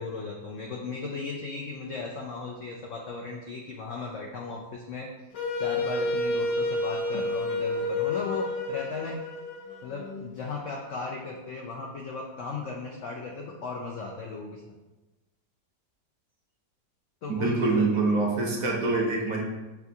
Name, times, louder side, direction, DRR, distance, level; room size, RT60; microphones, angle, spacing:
voice 1, 0.0-5.1 5.6-9.2 9.8-14.6 17.2-17.9, left 4 dB, 90° left, -1 dB, 0.6 m, -36 dB
Wind instrument woodwind instrument, 5.3-10.3, left 2 dB, 65° left, 1.0 m, -30 dB
voice 2, 17.3-19.4, right 3 dB, 65° right, -1 dB, 0.9 m, -25 dB
6.9 x 2.4 x 2.7 m, 1.1 s
omnidirectional pair, 1.9 m